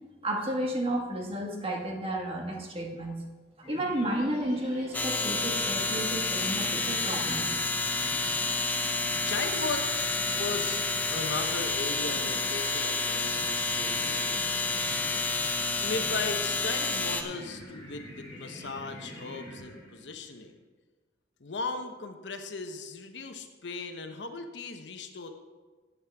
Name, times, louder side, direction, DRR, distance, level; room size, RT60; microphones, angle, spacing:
voice 1, 0.2-3.2 3.6-7.6, right 1 dB, 30° right, 0 dB, 1.6 m, -32 dB
sound 1, 3.6-20.2, left 1 dB, 30° left, 2.5 m, -45 dB
sound 2, 4.9-17.2, left 3 dB, 10° left, 0.7 m, -29 dB
voice 2, 9.2-14.7 15.8-20.6 21.4-25.3, left 3 dB, 70° left, 6 dB, 0.9 m, -37 dB
14.5 x 8.2 x 3.5 m, 1.4 s
head